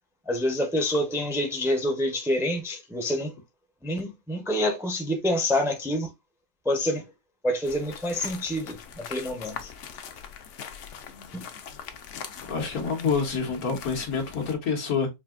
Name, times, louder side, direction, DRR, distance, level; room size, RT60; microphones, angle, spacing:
voice 1, 0.3-3.3 3.8-6.1 6.6-7.1 7.4-9.7 11.3-11.5, left 1 dB, 5° right, 0.5 m, -27 dB
sound 1, 7.6-14.5, left 7 dB, 65° left, 0.9 m, -42 dB
voice 2, 12.5-15.1, left 5 dB, 90° left, 1.6 m, -27 dB
5.4 x 2.8 x 2.4 m
omnidirectional pair, 1.5 m